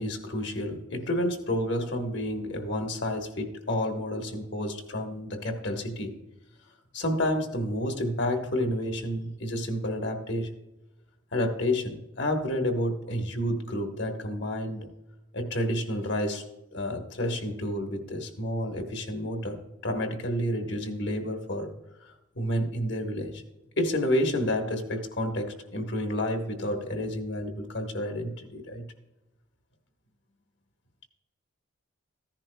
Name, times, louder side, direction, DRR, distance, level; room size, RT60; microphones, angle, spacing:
voice 1, 0.0-6.1 6.9-10.5 11.3-14.9 15.3-16.4 16.7-21.7 22.0-23.4 23.8-28.8, left 1 dB, 55° left, 4 dB, 1.3 m, -30 dB
15.0 x 10.5 x 2.3 m, 0.97 s
head